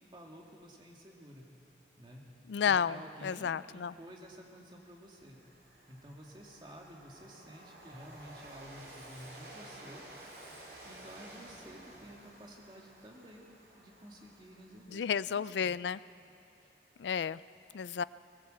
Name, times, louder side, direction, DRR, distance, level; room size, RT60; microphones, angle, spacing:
voice 1, 0.1-1.5 2.0-2.2 2.6-5.4 5.9-10.0 10.8-13.5 13.8-15.0 15.3-15.8, equal, 25° right, -1 dB, 2.5 m, -51 dB
voice 2, 2.5-3.0 3.2-3.9 14.9-16.0 17.0-17.4 17.7-18.0, left 7 dB, 85° left, 18 dB, 0.4 m, -31 dB
Train, 4.3-4.4 4.8-15.2, right 1 dB, 70° right, 4.8 m, -53 dB
20.0 x 19.5 x 7.9 m, 2.8 s
head